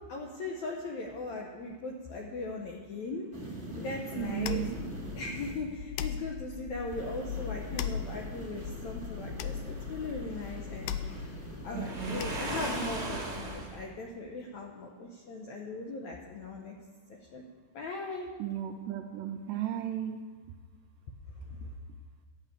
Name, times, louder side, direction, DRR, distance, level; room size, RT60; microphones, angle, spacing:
voice 1, 0.1-3.3 3.7-4.7 5.1-10.9 11.6-16.7 17.1-17.4 17.7-18.3, left 3 dB, 75° left, 0 dB, 1.7 m, -39 dB
sound 1, 3.3-5.6 6.9-12.5, right 2 dB, 10° right, 1.5 m, -44 dB
voice 2, 4.1-4.8 11.7-12.2 18.4-20.3, right 11 dB, 80° right, 4 dB, 2.0 m, -35 dB
sound 2, 4.2-12.8, left 8 dB, 90° left, 1.9 m, -39 dB
Waves surf, 11.7-13.8, right 2 dB, 60° right, 0.6 m, -36 dB
11.5 x 6.6 x 8.1 m, 1.4 s
omnidirectional pair, 4.4 m